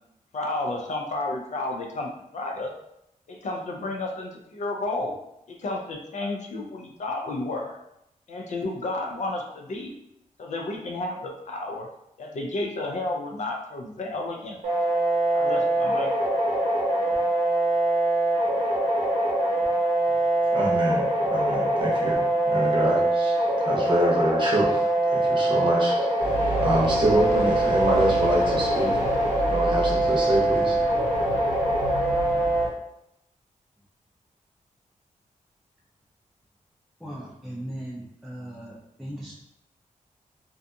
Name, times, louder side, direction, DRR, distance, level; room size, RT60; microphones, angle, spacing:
voice 1, 0.3-2.7 3.3-5.2 5.5-7.8 8.3-9.9 10.4-11.9 12.2-14.8 15.3-16.1, left 2 dB, 60° left, 2 dB, 0.4 m, -31 dB
sound 1, 14.6-32.6, right 1 dB, 80° right, 0.9 m, -23 dB
voice 2, 20.5-23.4 23.6-26.1 26.6-28.9 29.5-30.8, right 1 dB, 35° right, -4 dB, 0.7 m, -26 dB
sound 2, 26.2-32.7, right 1 dB, 80° left, 1.0 m, -32 dB
voice 3, 37.0-39.3, right 1 dB, ahead, -6 dB, 0.4 m, -38 dB
2.5 x 2.3 x 2.6 m, 0.82 s
wide cardioid pair, 150°, 14 cm